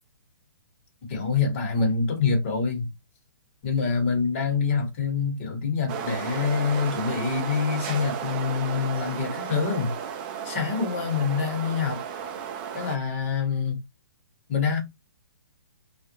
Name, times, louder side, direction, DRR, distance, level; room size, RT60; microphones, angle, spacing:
voice 1, 1.1-2.9 3.6-9.9 10.4-12.0 12.7-13.8 14.5-14.8, left 5 dB, 40° left, 1.2 m, -26 dB
sound 1, 5.9-13.0, right 8 dB, 25° right, 0.4 m, -34 dB
2.4 x 2.1 x 2.7 m
hypercardioid pair, 155°, 11 cm